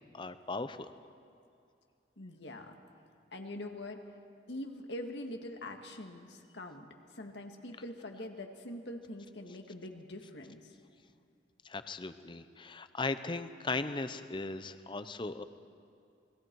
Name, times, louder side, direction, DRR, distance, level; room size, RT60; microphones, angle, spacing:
voice 1, 0.1-0.9 11.6-15.4, left 3 dB, 30° left, 11 dB, 0.7 m, -37 dB
voice 2, 2.2-2.7 3.3-4.0 4.5-6.9 7.1-10.6, left 1 dB, 80° left, 4 dB, 2.0 m, -43 dB
28.5 x 21.5 x 4.7 m, 2.5 s
head